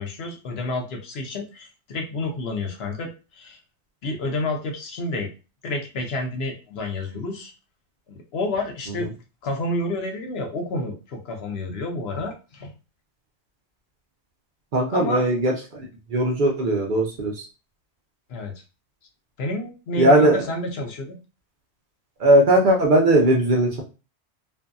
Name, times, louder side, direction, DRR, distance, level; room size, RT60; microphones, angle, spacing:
voice 1, 0.0-3.6 4.0-5.3 5.6-7.5 8.1-9.1 9.4-12.7 14.9-15.2 18.3-18.5 19.4-21.1, left 2 dB, 70° left, 3 dB, 0.9 m, -29 dB
voice 2, 14.7-17.4 20.0-20.4 22.2-23.8, right 1 dB, 55° right, 0 dB, 0.7 m, -19 dB
2.6 x 2.5 x 2.2 m, 0.31 s
omnidirectional pair, 1.1 m